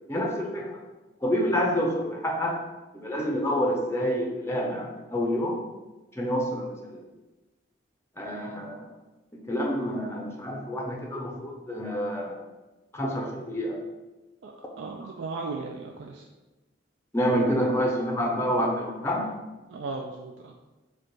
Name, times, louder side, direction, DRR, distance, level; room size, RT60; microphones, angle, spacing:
voice 1, 0.1-0.8 1.2-2.6 2.9-5.6 6.1-7.0 8.2-8.9 9.5-12.4 12.9-13.8 17.1-19.2, equal, 15° left, 0 dB, 0.5 m, -28 dB
voice 2, 14.8-16.2 19.7-20.5, right 3 dB, 70° right, 1 dB, 0.4 m, -36 dB
4.9 x 2.3 x 4.5 m, 1.1 s
head